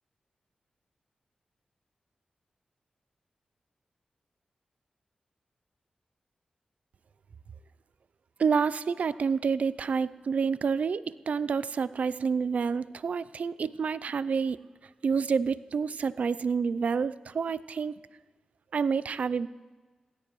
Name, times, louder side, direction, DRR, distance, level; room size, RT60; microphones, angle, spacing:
voice 1, 8.4-14.6 15.0-17.9 18.7-19.5, right 5 dB, 75° right, 17 dB, 0.4 m, -28 dB
22.0 x 16.5 x 3.1 m, 1.3 s
cardioid pair, 55°, 2 cm